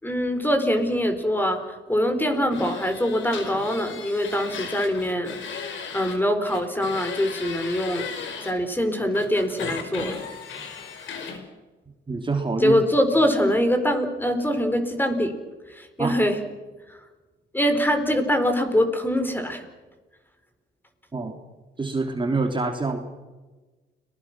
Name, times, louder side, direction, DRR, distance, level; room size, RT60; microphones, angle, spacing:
voice 1, 0.0-5.3 5.9-10.2 12.6-15.3 15.7-16.4 16.9-17.0 17.5-19.6, equal, 10° left, 6 dB, 4.2 m, -23 dB
sound 1, 2.5-6.2 6.4-8.5 9.1-11.4, left 6 dB, 75° left, 4.9 m, -36 dB
voice 2, 12.1-12.8 16.0-16.2 21.1-21.3 21.8-23.0, right 3 dB, 25° right, 3 dB, 3.1 m, -26 dB
30.0 x 20.5 x 6.1 m, 1.2 s
cardioid pair, 90°, 20 cm